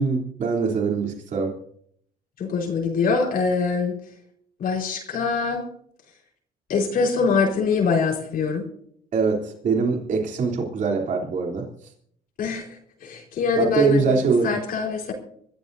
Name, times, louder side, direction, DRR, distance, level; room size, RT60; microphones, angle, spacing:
voice 1, 0.0-1.5 9.1-11.7 13.6-14.6, right 4 dB, 50° right, 0 dB, 3.4 m, -23 dB
voice 2, 2.4-3.9 4.6-5.6 6.7-8.6 12.4-12.7 13.0-15.1, left 5 dB, 60° left, 0 dB, 4.6 m, -23 dB
25.5 x 14.5 x 2.7 m, 0.66 s
cardioid pair, 110°, 17 cm